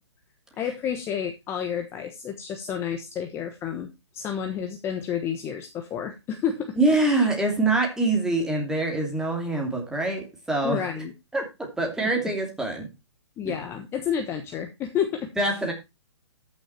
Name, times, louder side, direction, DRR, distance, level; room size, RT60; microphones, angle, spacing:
voice 1, 0.6-6.8 10.6-11.1 12.0-12.1 13.4-15.3, left 8 dB, 15° left, 5 dB, 1.1 m, -30 dB
voice 2, 6.7-10.8 11.3-12.9 13.4-13.5 15.4-15.7, right 2 dB, 5° right, 1 dB, 2.7 m, -25 dB
13.0 x 6.4 x 4.4 m, 0.24 s
hypercardioid pair, 150°, 15 cm